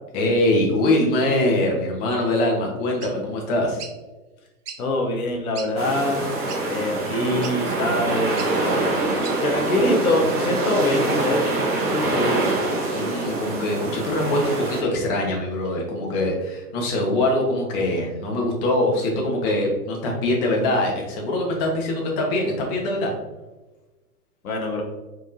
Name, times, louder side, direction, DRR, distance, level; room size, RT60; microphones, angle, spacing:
voice 1, 0.1-3.8 12.1-12.4 12.9-23.1, left 1 dB, 35° left, 0 dB, 1.3 m, -23 dB
sound 1, 3.0-3.1 3.8-4.0 4.7-4.8 5.3-5.4 5.5-5.7 6.5-6.6 7.4-7.6 8.4-8.5 9.2-9.4, right 6 dB, 75° right, 0.7 m, -36 dB
voice 2, 4.8-6.2 6.7-8.5 9.4-12.6 24.4-24.8, left 1 dB, 65° left, 1 dB, 1.0 m, -24 dB
sound 2, 5.8-14.8, right 2 dB, 20° right, 0.9 m, -25 dB
5.3 x 3.6 x 2.7 m, 1.2 s
figure-of-eight pair, 110°, 46 cm